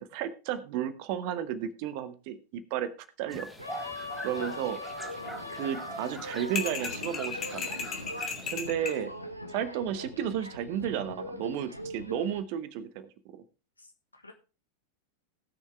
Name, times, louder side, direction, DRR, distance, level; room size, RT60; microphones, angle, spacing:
voice 1, 0.0-3.5 4.2-4.8 5.5-7.8 8.5-9.1 9.5-13.4, right 10 dB, 45° right, 13 dB, 1.1 m, -33 dB
sound 1, 3.3-8.5, equal, ahead, 1.6 m, -43 dB
sound 2, 3.6-12.4, left 1 dB, 90° right, 1.1 m, -41 dB
voice 2, 4.3-4.7 8.6-9.1 13.8-14.3, left 4 dB, 80° left, 6 dB, 1.7 m, -47 dB
sound 3, 6.6-9.0, left 5 dB, 25° left, 2.4 m, -35 dB
18.0 x 6.6 x 3.3 m, 0.33 s
figure-of-eight pair, 90°, 0 cm